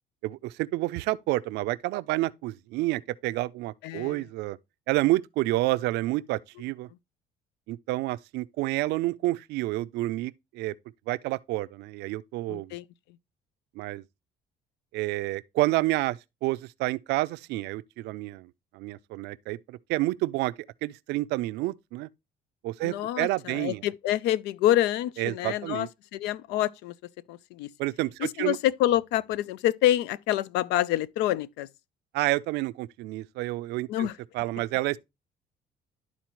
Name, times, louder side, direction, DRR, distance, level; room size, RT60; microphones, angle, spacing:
voice 1, 0.2-4.6 4.9-6.9 7.7-10.7 11.1-12.7 13.8-14.0 14.9-20.5 20.8-22.1 22.6-23.8 25.2-25.9 27.8-28.6 32.1-34.1 34.3-35.0, right 18 dB, 85° right, 0.4 m, -29 dB
voice 2, 3.8-4.1 12.5-12.8 22.8-26.9 27.3-27.7 28.2-31.7 33.9-34.1, left 13 dB, 90° left, 0.4 m, -27 dB
12.0 x 4.1 x 3.0 m
cardioid pair, 110°, 17 cm